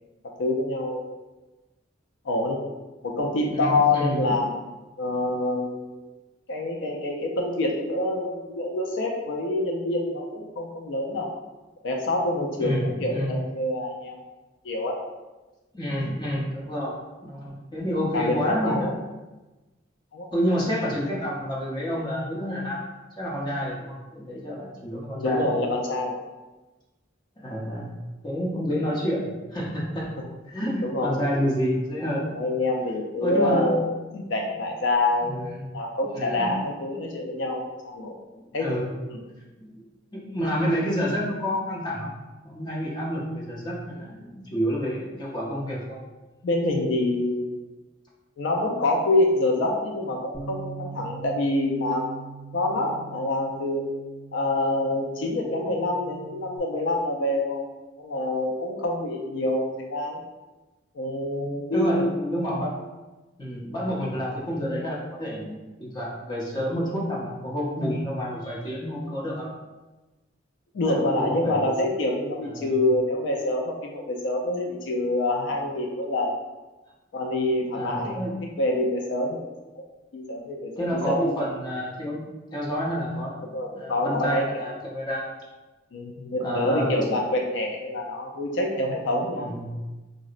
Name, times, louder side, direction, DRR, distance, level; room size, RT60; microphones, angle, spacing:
voice 1, 0.4-1.1 2.2-2.6 3.0-4.5 5.0-6.1 6.5-11.3 11.8-14.2 14.6-15.0 16.0-16.1 18.1-18.9 20.1-20.3 25.1-26.2 30.8-31.3 32.3-35.4 35.7-38.2 38.5-38.7 39.1-39.2 46.4-47.5 48.4-52.2 52.5-53.9 54.3-57.7 58.0-60.2 60.9-62.1 70.7-76.4 77.1-78.2 78.6-79.5 79.8-79.9 80.1-81.3 83.5-84.7 85.9-89.5, left 2 dB, 75° left, 0 dB, 0.4 m, -26 dB
voice 2, 3.5-4.3 12.6-13.4 15.7-16.9 17.2-18.9 20.3-22.8 23.2-25.5 27.4-27.9 28.2-30.1 30.5-32.2 33.2-33.7 35.2-35.6 36.1-36.5 38.6-39.0 39.6-39.7 40.1-42.1 42.4-46.0 61.7-62.7 63.4-69.5 70.9-71.6 72.4-72.7 77.7-78.6 80.8-82.2 82.5-85.3 86.4-86.9 89.4-89.7, equal, 25° left, -5 dB, 0.6 m, -29 dB
Bass guitar, 50.3-56.6, right 4 dB, 40° right, 0.5 m, -42 dB
3.8 x 2.0 x 2.4 m, 1.1 s
head